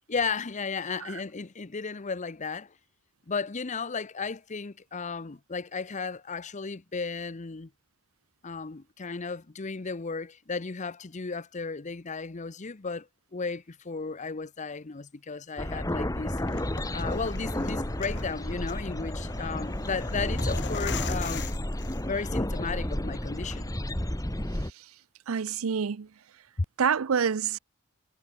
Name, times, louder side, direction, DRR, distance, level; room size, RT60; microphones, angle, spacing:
voice 1, 0.1-2.7 3.3-7.7 8.4-16.4 16.9-21.5 22.0-23.7 26.6-26.7, left 4 dB, 35° left, 0.8 m, -34 dB
sound 1, 15.6-24.7, left 1 dB, 15° left, 1.9 m, -31 dB
sound 2, 16.3-22.5, left 6 dB, 55° left, 2.3 m, -42 dB
voice 2, 24.5-24.9 25.3-26.1 26.8-27.6, right 7 dB, 75° right, 0.5 m, -28 dB
head